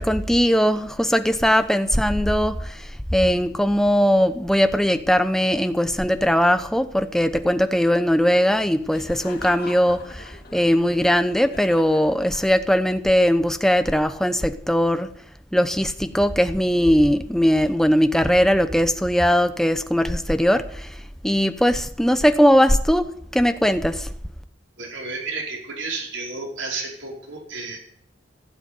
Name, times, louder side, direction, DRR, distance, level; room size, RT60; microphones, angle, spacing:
voice 1, 0.0-15.1 15.5-24.1, equal, ahead, 9 dB, 0.8 m, -20 dB
Laughter, 8.9-12.8, left 3 dB, 50° left, 2.1 m, -42 dB
voice 2, 24.8-27.8, right 3 dB, 80° right, -1 dB, 5.1 m, -32 dB
16.0 x 8.1 x 9.6 m, 0.67 s
head